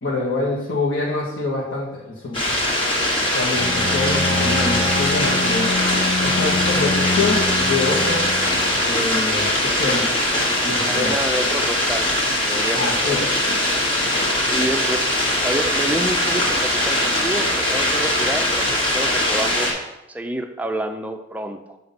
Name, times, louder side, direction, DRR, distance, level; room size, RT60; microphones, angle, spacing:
voice 1, 0.0-2.6 3.3-5.7 6.2-8.3 8.8-10.1 10.6-11.2 12.7-13.3, left 3 dB, 75° left, -7 dB, 1.3 m, -25 dB
sound 1, 2.3-19.7, left 1 dB, 25° left, 1.3 m, -21 dB
Bowed string instrument, 3.5-8.9, left 3 dB, 50° left, 1.0 m, -26 dB
voice 2, 10.9-12.1 12.4-13.3 13.7-13.8 14.5-15.1 15.4-19.8 20.1-21.8, right 1 dB, 10° right, 5 dB, 0.4 m, -28 dB
7.4 x 2.8 x 5.3 m, 0.96 s
head